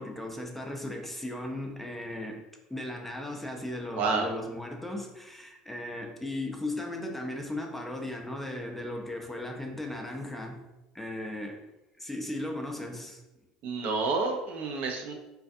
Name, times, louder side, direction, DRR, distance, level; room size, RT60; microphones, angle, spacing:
voice 1, 0.0-2.4 2.7-10.6 10.9-11.6 12.0-13.2, left 1 dB, 5° left, 2 dB, 0.4 m, -36 dB
voice 2, 3.9-4.3 13.6-15.1, right 4 dB, 55° right, 2 dB, 0.4 m, -29 dB
2.3 x 2.3 x 2.5 m, 0.99 s
hypercardioid pair, 70°, 3 cm